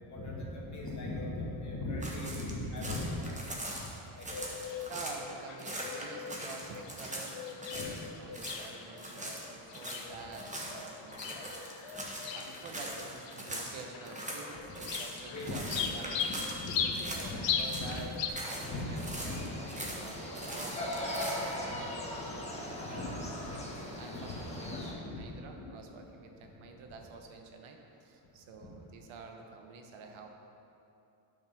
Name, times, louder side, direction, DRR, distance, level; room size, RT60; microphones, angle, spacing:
voice 1, 0.0-3.3 3.7-3.9 4.1-4.5 7.7-7.8 10.1-10.2 14.7-14.8 15.3-15.9 16.2-18.0 18.6-19.4 19.7-19.8 21.7-21.8 22.2-22.3 22.7-23.1 23.4-23.5 24.1-24.3 24.6-25.2 25.5-25.7, left 2 dB, 35° left, -4 dB, 2.0 m, -39 dB
sound 1, 2.0-5.2 5.6-8.1 8.3-8.7 9.0-17.3 17.6-18.7 19.0-21.6, right 1 dB, 15° right, 1.3 m, -42 dB
sound 2, 4.3-18.3, left 7 dB, 65° left, 0.8 m, -39 dB
voice 2, 4.9-11.4 12.3-15.6 15.9-16.3 17.1-19.5 20.0-22.1 22.6-23.6 23.9-30.3, right 4 dB, 80° right, 3 dB, 1.1 m, -48 dB
sound 3, 18.4-24.9, left 1 dB, 15° left, 1.4 m, -39 dB
9.1 x 5.5 x 5.8 m, 2.8 s
cardioid pair, 115°, 48 cm